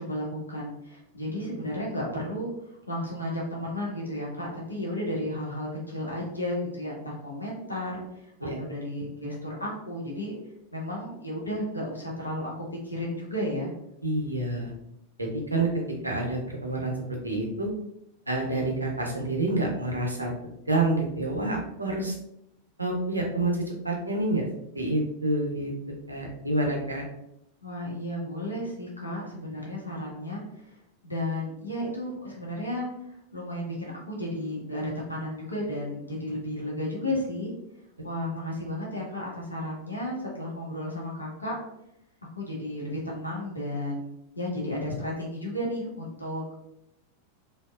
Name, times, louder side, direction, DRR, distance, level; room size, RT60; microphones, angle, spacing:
voice 1, 0.0-10.3 10.7-13.7 27.6-30.8 31.0-32.9 33.3-37.5 38.0-41.5 42.4-44.1 44.3-46.6, left 1 dB, 80° left, -4 dB, 0.7 m, -33 dB
voice 2, 14.0-14.7 15.2-16.9 17.2-17.7 18.3-20.3 20.7-22.1 22.8-24.4 24.7-25.7 26.1-27.0, right 2 dB, 85° right, 0 dB, 0.5 m, -28 dB
2.7 x 2.0 x 2.3 m, 0.81 s
figure-of-eight pair, 90°, 0 cm